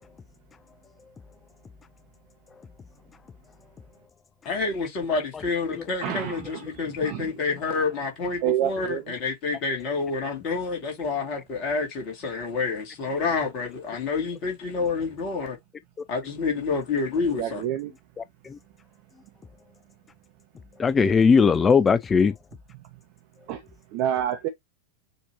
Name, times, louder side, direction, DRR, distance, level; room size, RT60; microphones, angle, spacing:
voice 1, 4.4-15.6 16.1-17.6, left 4 dB, 40° left, 2.2 m, -28 dB
voice 2, 6.0-7.6 8.4-9.1 17.4-17.9 22.7-23.0 23.5-24.5, right 11 dB, 45° right, 0.9 m, -29 dB
voice 3, 18.2-18.6 20.8-22.3, left 5 dB, 20° left, 0.3 m, -19 dB
6.5 x 2.8 x 2.9 m
figure-of-eight pair, 90°, 0 cm